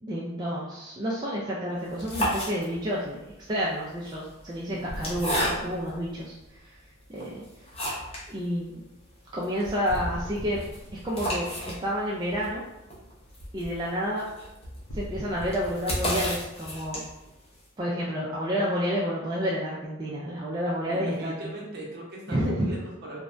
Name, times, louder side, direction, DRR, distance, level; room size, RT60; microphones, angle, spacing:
voice 1, 0.0-3.2 3.5-6.3 6.6-6.7 7.1-7.4 8.3-8.8 9.3-10.6 11.0-12.6 13.5-14.2 14.9-17.0 17.8-21.5 22.3-22.7, equal, 20° right, -6 dB, 0.3 m, -29 dB
sound 1, 1.8-3.0 3.9-6.0 6.6-6.7 7.2-8.3 8.6-8.7 9.0-9.1 9.4-17.3, equal, 30° left, 0.7 m, -33 dB
sound 2, 4.9-7.0 9.9-11.9 14.9-17.4, equal, 80° left, 0.7 m, -41 dB
voice 2, 20.9-23.2, right 1 dB, 50° right, -3 dB, 0.7 m, -40 dB
3.3 x 2.1 x 2.5 m, 0.98 s
head